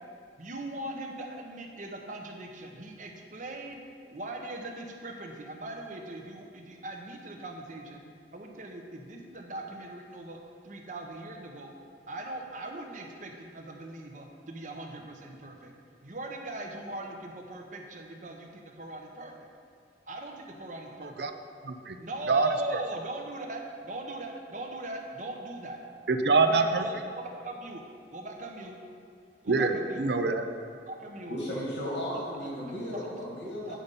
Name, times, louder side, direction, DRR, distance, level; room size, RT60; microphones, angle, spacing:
voice 1, 0.4-3.8 4.1-8.0 8.3-10.4 10.6-11.7 12.1-15.7 16.0-19.5 20.1-21.3 22.0-23.6 23.9-25.8 26.4-27.8 28.1-28.8 29.4-30.0 30.9-31.3 32.4-32.5 32.9-33.0 33.6-33.8, right 1 dB, 45° right, 2 dB, 0.9 m, -40 dB
voice 2, 21.6-22.0 22.3-22.5 26.1-26.9 29.5-30.5, right 4 dB, 65° right, 7 dB, 0.6 m, -25 dB
voice 3, 31.3-33.8, equal, 85° left, -5 dB, 2.3 m, -35 dB
8.7 x 5.3 x 5.4 m, 2.4 s
head